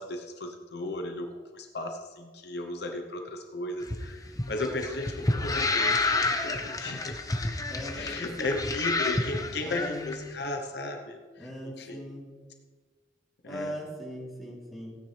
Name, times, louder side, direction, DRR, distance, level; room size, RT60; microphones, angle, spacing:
voice 1, 0.0-7.2 7.9-12.1 13.4-13.8, left 2 dB, 65° left, 4 dB, 0.9 m, -35 dB
sound 1, 3.8-10.1, left 2 dB, 20° left, 0.8 m, -29 dB
voice 2, 7.7-8.8 9.6-10.1 11.4-12.3 13.4-15.0, equal, ahead, -6 dB, 3.2 m, -39 dB
16.0 x 9.3 x 3.4 m, 1.4 s
head